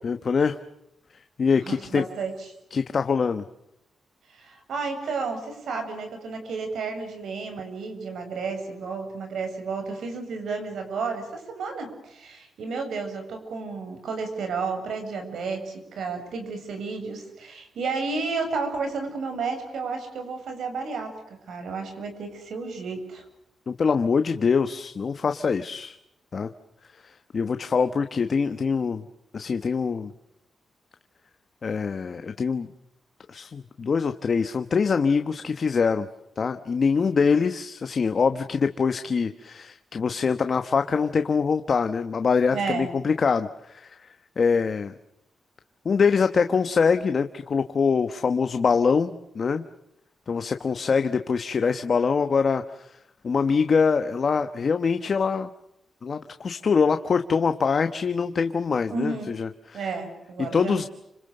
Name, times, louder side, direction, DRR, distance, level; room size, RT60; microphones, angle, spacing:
voice 1, 0.0-0.6 1.4-2.0 2.7-3.4 23.7-26.0 26.3-26.5 27.0-29.0 29.3-30.1 31.6-32.7 33.3-36.1 36.4-44.0 44.4-44.9 45.8-49.6 50.3-52.9 53.2-55.5 56.0-59.9 60.4-60.9, left 5 dB, 40° left, 8 dB, 1.2 m, -24 dB
voice 2, 1.6-2.5 4.3-21.1 21.5-23.2 42.5-42.9 58.9-59.3 59.7-60.9, right 4 dB, 75° right, 6 dB, 7.5 m, -32 dB
29.5 x 27.0 x 6.7 m, 0.81 s
wide cardioid pair, 140°, 0 cm